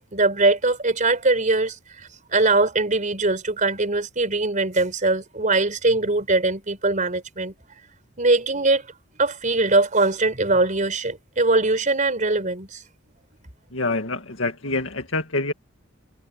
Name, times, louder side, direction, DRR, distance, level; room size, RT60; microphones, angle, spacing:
voice 1, 0.0-7.5 8.2-8.9 9.2-12.8, right 2 dB, 40° right, 4.5 m, -21 dB
voice 2, 13.7-15.5, left 2 dB, 85° left, 2.0 m, -26 dB
head